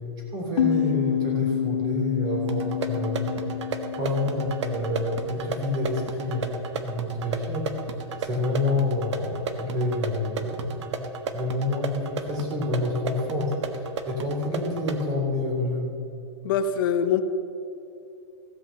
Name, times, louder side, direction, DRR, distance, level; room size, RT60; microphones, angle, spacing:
voice 1, 0.3-3.3 4.0-11.0 11.3-15.9, left 2 dB, 25° right, -1 dB, 3.0 m, -28 dB
sound 1, 0.6-5.9, left 10 dB, 75° left, 0.8 m, -29 dB
sound 2, 2.5-15.1, right 5 dB, 80° right, 1.3 m, -34 dB
voice 2, 16.4-17.2, left 7 dB, 45° left, 10 dB, 0.8 m, -23 dB
15.5 x 5.5 x 7.5 m, 2.8 s
hypercardioid pair, 155°, 15 cm